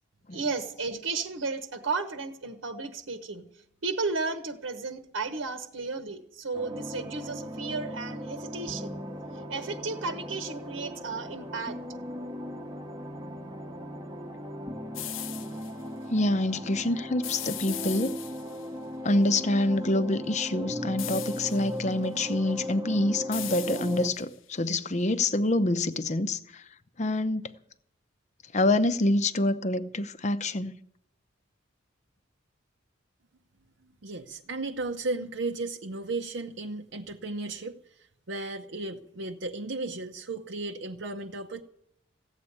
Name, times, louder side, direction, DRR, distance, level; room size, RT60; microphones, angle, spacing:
voice 1, 0.3-3.4 3.8-9.0 9.5-11.8, right 4 dB, 75° right, 1.1 m, -33 dB
sound 1, 6.5-24.1, equal, 20° right, 1.0 m, -38 dB
sound 2, 14.9-15.7 17.2-18.7 21.0-21.8 23.3-24.4, left 13 dB, 75° left, 0.6 m, -38 dB
voice 2, 16.1-18.2 19.0-26.7 27.0-27.5 28.5-30.7, left 2 dB, 35° left, 0.7 m, -26 dB
voice 3, 34.0-41.6, right 2 dB, 60° right, 0.7 m, -35 dB
15.5 x 8.2 x 9.8 m
head